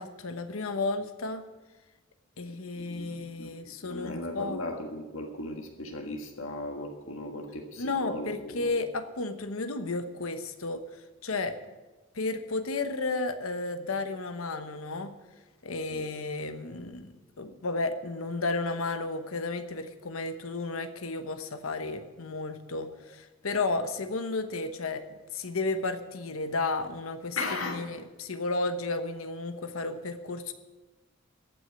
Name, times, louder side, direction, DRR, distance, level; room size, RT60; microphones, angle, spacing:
voice 1, 0.0-1.4 2.4-4.6 7.8-10.8 11.2-11.6 12.1-15.1 15.6-25.0 25.3-30.5, left 3 dB, 85° left, 10 dB, 1.1 m, -33 dB
voice 2, 2.7-8.7 15.9-16.0 27.4-27.9, left 2 dB, 70° left, 3 dB, 1.6 m, -37 dB
14.5 x 6.3 x 9.6 m, 1.2 s
head